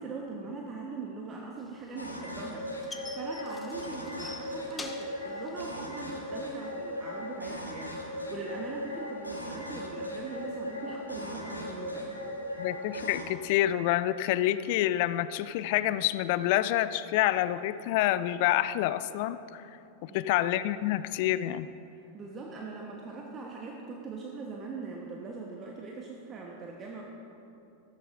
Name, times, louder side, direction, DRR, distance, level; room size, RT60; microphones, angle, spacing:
voice 1, 0.0-12.1 20.1-20.3 21.9-27.0, right 3 dB, 25° right, -1 dB, 1.1 m, -41 dB
sound 1, 1.7-6.7, left 3 dB, 15° left, 1.0 m, -45 dB
sound 2, 2.0-13.2, equal, 85° left, 1.5 m, -38 dB
voice 2, 12.6-19.6 20.0-21.7, left 14 dB, 50° left, 15 dB, 0.4 m, -27 dB
14.5 x 14.5 x 2.6 m, 2.8 s
figure-of-eight pair, 90°, 0 cm